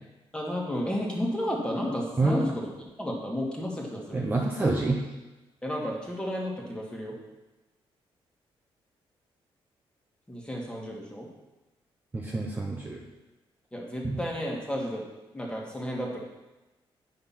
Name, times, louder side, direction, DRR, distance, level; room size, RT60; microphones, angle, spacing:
voice 1, 0.3-2.7 3.0-4.2 5.6-7.2 10.3-11.3 13.7-15.0 15.3-16.2, equal, 10° left, -2 dB, 1.9 m, -32 dB
voice 2, 4.1-5.0 12.1-13.0 14.0-14.2, right 2 dB, 20° right, -2 dB, 1.0 m, -27 dB
9.0 x 5.9 x 5.8 m, 1.1 s
cardioid pair, 140°, 10 cm